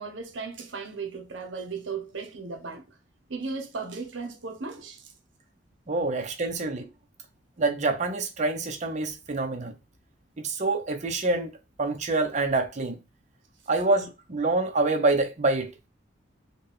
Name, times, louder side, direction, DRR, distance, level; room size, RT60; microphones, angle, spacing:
voice 1, 0.0-2.8 3.3-5.1, right 4 dB, 80° right, 0.8 m, -36 dB
voice 2, 5.9-6.9 7.6-9.7 10.4-11.5 11.8-13.0 13.7-15.7, right 2 dB, 40° right, 0.7 m, -26 dB
4.1 x 2.2 x 3.4 m
head